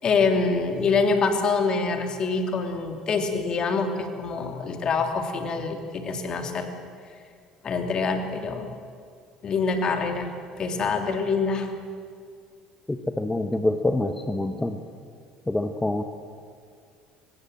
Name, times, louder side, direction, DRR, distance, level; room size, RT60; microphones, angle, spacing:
voice 1, 0.0-6.7 7.6-8.7 9.4-11.7, left 4 dB, 40° left, 5 dB, 3.1 m, -25 dB
voice 2, 12.9-14.8 15.5-16.0, left 2 dB, 10° left, 7 dB, 1.4 m, -26 dB
24.5 x 20.5 x 7.7 m, 2.2 s
figure-of-eight pair, 60°, 2 cm